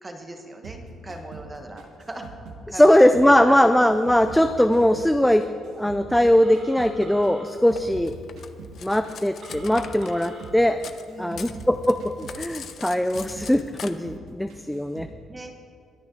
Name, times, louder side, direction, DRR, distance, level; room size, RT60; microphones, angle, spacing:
voice 1, 0.0-2.2 2.7-3.6 11.1-11.6 15.3-15.5, right 1 dB, 15° right, 4 dB, 1.2 m, -38 dB
sound 1, 0.6-3.3 3.6-6.3 6.5-9.9 10.2-10.6 10.9-13.6 13.8-14.2 14.5-15.2, right 3 dB, 85° right, 1.8 m, -43 dB
voice 2, 2.7-5.5 5.7-8.1 8.8-10.8 11.2-15.1, left 1 dB, 5° left, 9 dB, 0.3 m, -20 dB
Telephone, 6.4-7.4 9.4-10.4, right 2 dB, 45° right, 3.4 m, -43 dB
Cutlery silverware, 7.7-11.0 11.3-13.9, left 8 dB, 45° left, 0.6 m, -41 dB
22.5 x 9.5 x 3.8 m, 2.2 s
cardioid pair, 165°, 0 cm